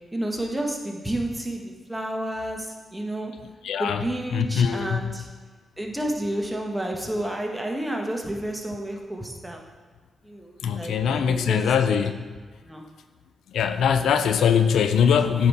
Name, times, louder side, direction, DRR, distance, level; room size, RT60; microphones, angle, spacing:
voice 1, 0.1-3.3 3.8-5.3 5.8-9.6 10.2-11.9 12.6-12.8, right 1 dB, 15° right, 1 dB, 1.2 m, -30 dB
voice 2, 3.6-4.0 4.3-5.1 10.6-12.1 13.5-15.5, left 7 dB, 80° left, 8 dB, 0.3 m, -21 dB
9.1 x 3.6 x 4.2 m, 1.4 s
supercardioid pair, 50°, 0 cm